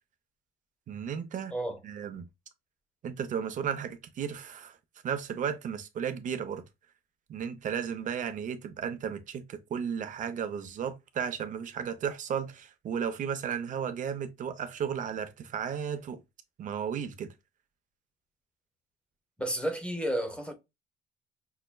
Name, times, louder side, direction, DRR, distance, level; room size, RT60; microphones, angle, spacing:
voice 1, 0.9-1.5 1.8-2.3 3.0-4.8 5.0-6.6 7.3-16.2 16.6-17.3, right 7 dB, 50° right, 0.7 m, -34 dB
voice 2, 19.4-20.5, right 1 dB, 5° left, 1.0 m, -31 dB
5.6 x 2.1 x 2.2 m
cardioid pair, 110°, 17 cm